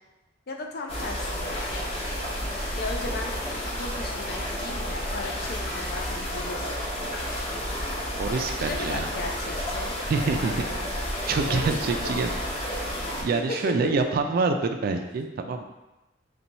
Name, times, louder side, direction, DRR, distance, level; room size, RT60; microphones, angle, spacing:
voice 1, 0.5-1.8 2.8-6.8 8.3-10.9 11.5-12.1 13.3-13.9, left 3 dB, 55° left, 2 dB, 0.5 m, -36 dB
sound 1, 0.9-13.2, equal, 30° left, 0.8 m, -31 dB
sound 2, 1.5-2.3 3.4-3.8 4.9-5.5 7.2-7.6 9.4-9.5 9.7-10.2 11.6-12.0 13.5-13.8, left 1 dB, 75° left, 1.4 m, -44 dB
voice 2, 8.2-9.1 10.1-11.0 11.3-12.3 12.6-12.8 13.2-15.6, right 4 dB, 55° right, 5 dB, 0.3 m, -26 dB
4.2 x 2.3 x 4.0 m, 1.0 s
head